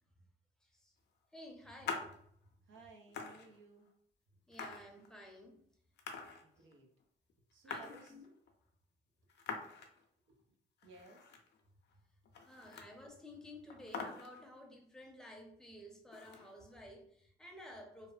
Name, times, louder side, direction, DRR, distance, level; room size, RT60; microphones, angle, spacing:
voice 1, 0.6-0.9 1.3-2.1 4.5-5.6 7.6-8.3 12.5-18.1, left 1 dB, 5° left, 0 dB, 0.6 m, -53 dB
sound 1, 1.8-2.2 2.8-2.9 3.1-3.9 4.5-5.5 6.0-6.8 7.0-7.1 7.3-8.5 9.3-10.0 10.4-10.5 10.8-11.6 11.9-12.0 12.2-13.1 13.4-13.5 13.7-14.6 16.1-16.8, left 5 dB, 60° left, 0.5 m, -45 dB
voice 2, 2.6-3.9 6.4-6.9 7.5-8.1 10.3-10.6 10.8-11.3, right 3 dB, 75° right, 1 dB, 0.7 m, -58 dB
2.8 x 2.1 x 2.4 m, 0.66 s
cardioid pair, 90°, 20 cm